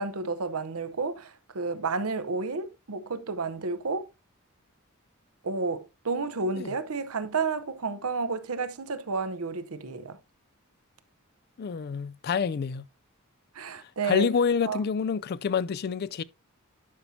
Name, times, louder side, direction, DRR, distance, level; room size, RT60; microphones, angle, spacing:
voice 1, 0.0-4.1 5.4-10.2 13.5-14.3 14.6-14.8, right 4 dB, 80° right, 0.9 m, -31 dB
voice 2, 11.6-12.9 14.0-16.2, left 6 dB, 45° left, 0.4 m, -27 dB
11.0 x 5.7 x 2.8 m
head